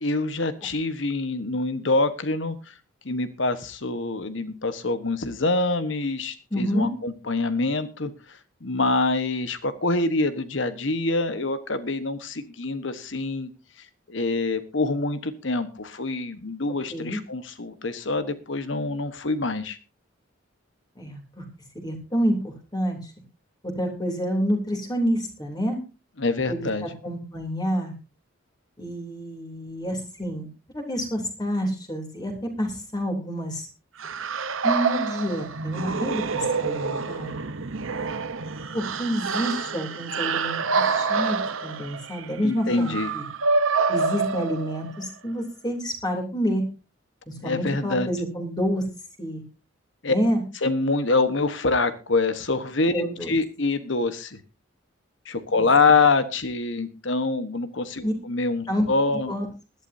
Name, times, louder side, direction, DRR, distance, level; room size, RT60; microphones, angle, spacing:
voice 1, 0.0-2.7 3.0-13.5 14.1-19.8 26.2-26.9 42.4-43.1 47.4-48.1 50.0-50.2 50.6-54.4 55.2-59.3, left 3 dB, 60° left, 11 dB, 1.3 m, -25 dB
voice 2, 6.5-6.9 16.9-17.2 21.0-21.4 21.7-23.0 23.8-25.8 26.5-26.7 27.0-27.9 28.8-30.5 30.7-32.3 32.6-33.7 34.6-37.3 38.7-43.2 43.9-46.6 47.3-48.8 49.2-49.4 50.1-50.4 52.9-53.3 55.5-55.7 58.0-58.1 58.7-58.8 59.3-59.5, equal, 20° left, 2 dB, 3.2 m, -28 dB
sound 1, 34.0-45.0, right 4 dB, 75° right, 1.0 m, -27 dB
20.0 x 12.0 x 2.7 m, 0.31 s
head